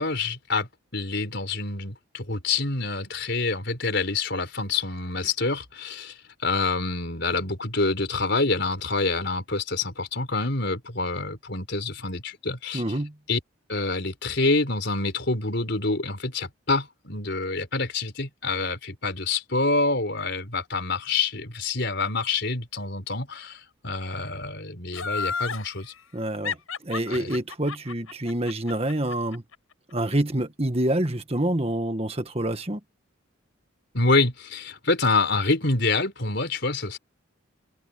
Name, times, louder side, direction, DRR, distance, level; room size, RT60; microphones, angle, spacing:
voice 1, 0.0-12.8 13.3-13.4 13.7-25.9 27.1-27.3 33.9-37.0, left 3 dB, 55° left, 4.7 m, -27 dB
voice 2, 12.7-13.2 26.1-26.6 26.8-29.4 29.9-32.8, right 1 dB, 30° right, 1.7 m, -27 dB
Laughter, 24.9-25.6 26.4-29.5 29.9-30.0, left 5 dB, 85° left, 7.9 m, -31 dB
head